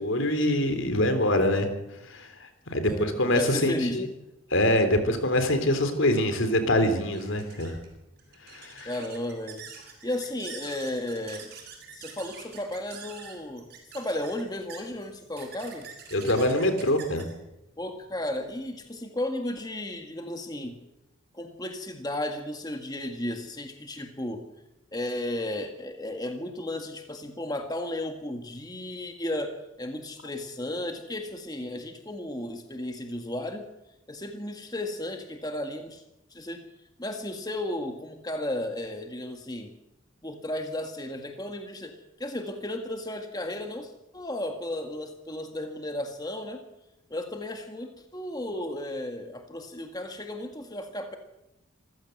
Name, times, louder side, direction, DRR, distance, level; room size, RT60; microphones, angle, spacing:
voice 1, 0.0-1.7 2.0-4.1 4.5-7.8 8.5-8.9 16.1-17.2, left 1 dB, 70° left, 8 dB, 3.5 m, -24 dB
voice 2, 2.8-4.1 8.8-9.6 10.0-11.5 11.9-13.7 13.9-15.9 17.8-20.7 21.3-24.5 24.9-33.7 34.1-36.0 36.3-36.6 37.0-39.7 40.2-46.6 47.1-51.2, left 1 dB, 20° left, 5 dB, 1.8 m, -34 dB
sound 1, 7.1-18.9, right 6 dB, 50° right, 7.1 m, -47 dB
26.5 x 15.5 x 7.9 m, 0.91 s
head